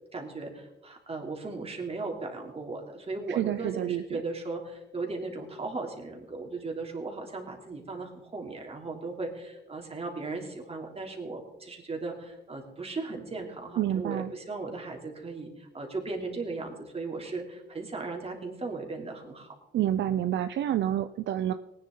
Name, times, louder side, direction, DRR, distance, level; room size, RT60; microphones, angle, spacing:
voice 1, 0.1-19.5, right 3 dB, 30° right, 1 dB, 3.1 m, -37 dB
voice 2, 3.3-4.2 13.8-14.3 19.7-21.5, right 11 dB, 65° right, 11 dB, 0.5 m, -28 dB
19.0 x 9.9 x 3.9 m, 0.98 s
cardioid pair, 90°, 20 cm